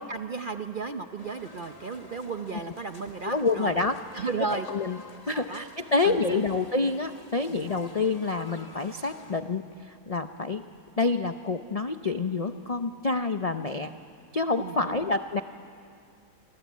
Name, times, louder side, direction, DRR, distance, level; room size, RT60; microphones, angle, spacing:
voice 1, 0.0-3.7 4.1-4.7 5.3-5.6 6.0-6.5 7.5-7.7 14.6-15.1, right 4 dB, 50° right, 7 dB, 0.6 m, -34 dB
sound 1, 1.2-9.4, left 3 dB, 25° left, 1.6 m, -49 dB
voice 2, 3.2-4.0 4.5-5.0 5.3-10.6 11.0-13.9 14.3-15.4, left 3 dB, 70° left, 8 dB, 0.3 m, -28 dB
27.5 x 25.0 x 8.4 m, 2.4 s
omnidirectional pair, 1.8 m